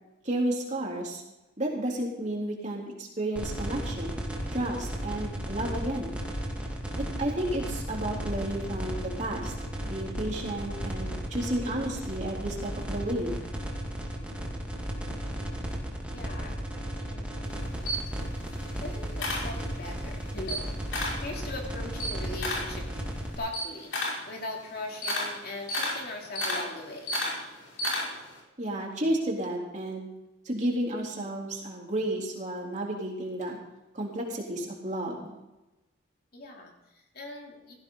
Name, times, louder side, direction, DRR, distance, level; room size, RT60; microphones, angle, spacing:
voice 1, 0.2-1.2 1.6-4.2 4.5-6.1 7.2-9.5 9.9-13.4 28.6-30.1 30.5-33.6 33.9-35.4, right 1 dB, 40° right, -2 dB, 3.5 m, -32 dB
sound 1, 3.4-23.4, equal, 5° right, 2.0 m, -35 dB
voice 2, 16.1-16.6 17.0-17.7 18.5-20.8 21.2-23.0 23.4-23.9 24.3-27.1 36.3-37.7, left 2 dB, 50° left, 0 dB, 3.2 m, -40 dB
Camera, 17.4-20.0 20.4-21.3 21.6-28.4, left 1 dB, 90° left, 5.8 m, -33 dB
16.5 x 15.5 x 4.0 m, 0.99 s
head